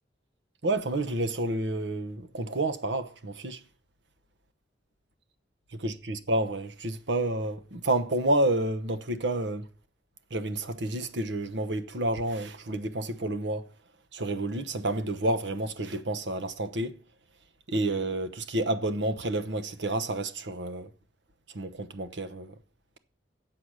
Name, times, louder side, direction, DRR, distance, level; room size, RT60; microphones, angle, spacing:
voice 1, 0.6-3.6 5.8-9.7 10.3-13.7 14.1-17.0 17.7-20.9 21.5-22.6, right 1 dB, 70° right, 1.0 m, -29 dB
8.8 x 7.8 x 6.4 m
head